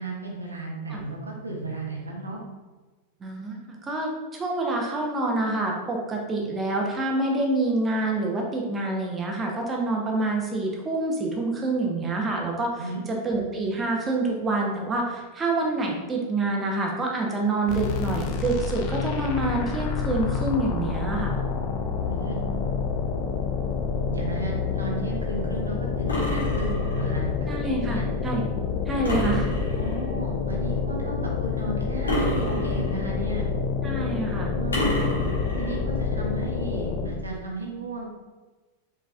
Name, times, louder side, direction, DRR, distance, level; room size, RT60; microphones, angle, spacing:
voice 1, 0.0-2.4 12.8-13.0 22.1-22.4 24.1-27.5 27.8-28.1 29.7-33.5 34.5-35.1 35.6-38.0, right 2 dB, 75° right, -1 dB, 1.0 m, -34 dB
voice 2, 3.2-21.4 27.5-28.5 28.9-29.5 33.8-34.5, right 2 dB, 20° right, 0 dB, 0.8 m, -27 dB
sound 1, 17.7-37.3, left 5 dB, 45° left, 0.6 m, -28 dB
sound 2, 26.1-27.1 29.0-30.1 32.1-33.2 34.7-35.8, equal, 70° left, 1.5 m, -28 dB
4.7 x 4.5 x 2.4 m, 1.3 s
figure-of-eight pair, 90°, 0 cm